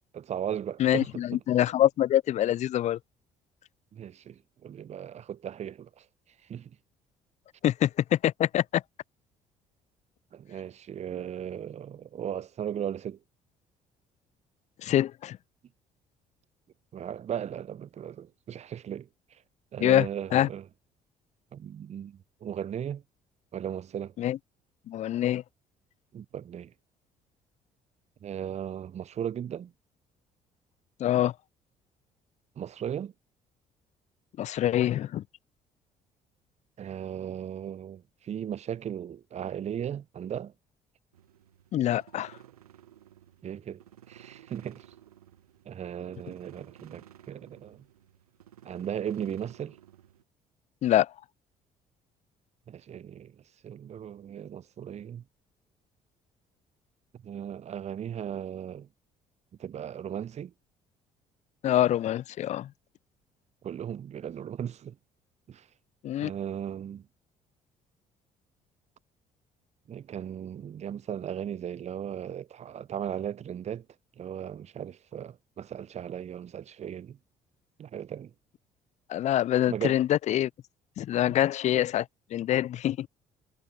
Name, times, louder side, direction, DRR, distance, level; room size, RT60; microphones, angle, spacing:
voice 1, 0.1-1.4 3.9-6.1 6.5-6.7 10.3-13.2 16.9-19.4 19.7-20.6 21.5-23.0 23.5-24.1 26.1-26.7 28.2-29.7 32.6-33.1 36.8-40.5 43.4-44.8 45.7-47.8 48.6-49.8 52.7-53.4 53.6-55.2 57.2-58.9 59.6-60.5 63.6-65.0 65.5-65.7 66.2-67.1 69.9-73.9 74.2-77.2 77.8-78.3 79.7-80.0, right 9 dB, 35° right, 0.7 m, -37 dB
voice 2, 0.8-3.0 7.6-8.8 14.8-15.4 19.8-20.1 20.3-20.5 24.2-24.4 24.9-25.4 31.0-31.3 34.4-35.2 41.7-42.3 50.8-51.1 61.6-62.7 66.0-66.3 79.1-80.5 81.0-83.1, left 12 dB, 40° left, 0.4 m, -25 dB
sound 1, 41.1-50.2, right 11 dB, 80° right, 1.5 m, -55 dB
figure-of-eight pair, 50°, 19 cm